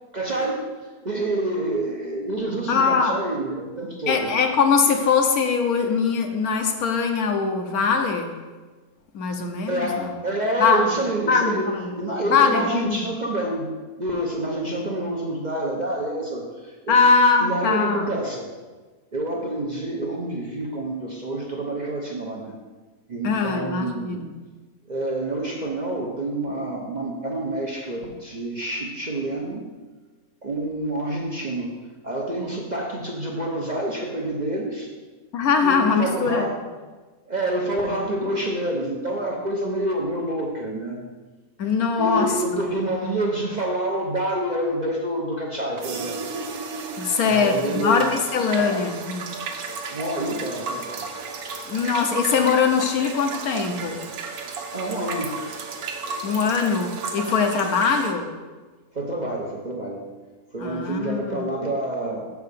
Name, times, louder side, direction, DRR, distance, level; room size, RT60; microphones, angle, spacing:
voice 1, 0.1-0.7 1.0-4.3 9.7-17.0 17.4-18.5 19.1-22.6 23.1-24.2 24.9-29.6 30.4-31.8 32.0-34.9 35.6-36.6 37.2-41.0 42.0-46.2 47.1-48.1 48.5-48.8 49.9-51.1 54.7-55.4 58.9-60.1 60.5-62.3, right 1 dB, 40° right, -1 dB, 0.7 m, -28 dB
voice 2, 2.7-3.2 4.1-8.3 9.1-10.1 10.6-10.8 11.3-11.9 12.2-13.0 16.9-18.1 23.2-24.3 35.3-36.5 41.6-42.3 47.0-49.3 51.7-54.0 56.2-58.3 60.6-61.5, left 5 dB, 75° left, 5 dB, 1.3 m, -21 dB
sound 1, 45.8-58.1, right 4 dB, 80° right, 1.3 m, -34 dB
6.2 x 4.7 x 6.7 m, 1.3 s
omnidirectional pair, 1.6 m